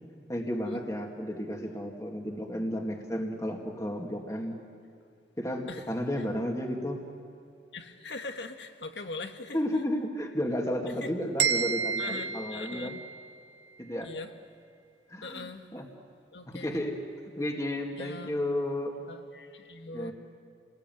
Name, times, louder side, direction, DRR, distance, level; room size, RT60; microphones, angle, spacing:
voice 1, 0.3-4.6 5.4-7.0 9.5-13.0 13.8-14.1 15.1-15.8 16.5-17.0 17.4-18.9 19.9-20.1, left 1 dB, 15° left, 2 dB, 2.2 m, -32 dB
voice 2, 7.7-9.6 10.8-11.1 12.0-13.0 14.0-14.3 15.2-15.7 16.3-16.8 18.0-18.3 19.1-20.1, left 3 dB, 75° left, 6 dB, 1.7 m, -41 dB
sound 1, 11.4-13.4, right 6 dB, 70° right, 2.2 m, -30 dB
29.5 x 20.5 x 9.2 m, 2.6 s
head